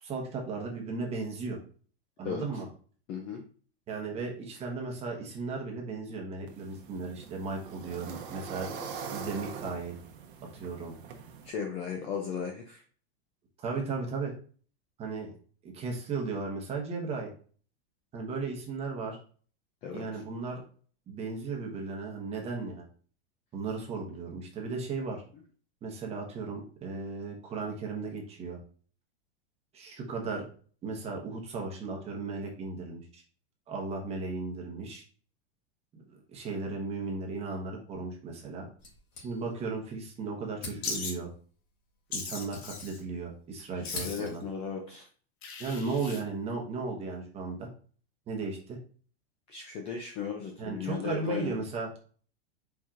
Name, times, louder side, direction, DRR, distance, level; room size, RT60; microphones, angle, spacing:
voice 1, 0.0-1.6 2.2-2.7 3.9-8.7 9.1-10.0 10.6-10.9 13.6-14.3 15.0-15.3 15.7-17.3 18.1-19.2 19.9-20.6 21.1-22.9 23.5-25.2 25.8-28.6 29.7-30.5 30.8-33.2 33.7-35.0 35.9-38.7 39.2-41.3 42.1-44.4 45.6-47.7 48.3-48.8 50.6-51.9, right 4 dB, 20° right, 0 dB, 1.0 m, -36 dB
voice 2, 3.1-3.4 11.4-12.8 19.8-20.2 43.7-45.0 49.5-51.5, left 6 dB, 20° left, 2 dB, 0.3 m, -36 dB
sound 1, 6.5-11.5, right 6 dB, 55° right, 0.9 m, -43 dB
sound 2, 38.8-39.8 40.1-40.2 40.5-41.2 42.1-43.4 43.6-44.6, left 3 dB, 55° left, 2.3 m, -45 dB
Wild animals, 40.8-41.1 42.1-43.0 43.8-44.4 45.4-46.2, left 4 dB, 80° left, 1.4 m, -38 dB
4.6 x 4.2 x 2.4 m, 0.43 s
supercardioid pair, 155°, 31 cm